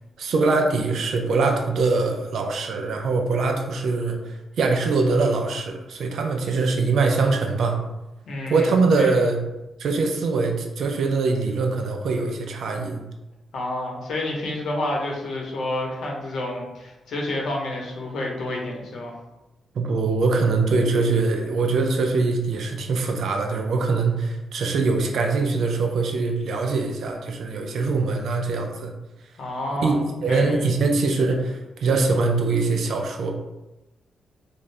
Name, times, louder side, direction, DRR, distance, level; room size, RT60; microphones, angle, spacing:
voice 1, 0.2-7.8 8.5-9.4 9.8-13.0 19.7-28.9 29.8-33.3, right 3 dB, 70° right, 3 dB, 0.4 m, -23 dB
voice 2, 8.3-9.2 13.5-19.1 29.4-30.7, left 1 dB, 75° left, -1 dB, 0.8 m, -29 dB
2.6 x 2.5 x 3.2 m, 0.97 s
cardioid pair, 90°, 0 cm